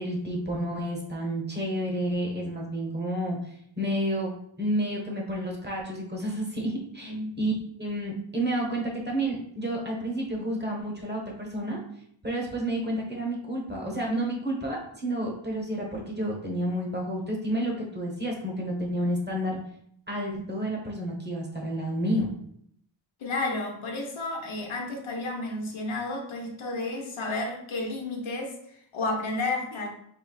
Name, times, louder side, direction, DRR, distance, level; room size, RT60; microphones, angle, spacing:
voice 1, 0.0-3.4 3.8-4.3 4.6-7.5 7.8-11.8 12.2-19.6 20.1-22.3, right 1 dB, 20° right, -1 dB, 1.0 m, -30 dB
voice 2, 7.0-7.4 23.2-29.9, left 2 dB, 80° left, 1 dB, 0.9 m, -32 dB
4.7 x 3.2 x 2.3 m, 0.69 s
wide cardioid pair, 105°, 47 cm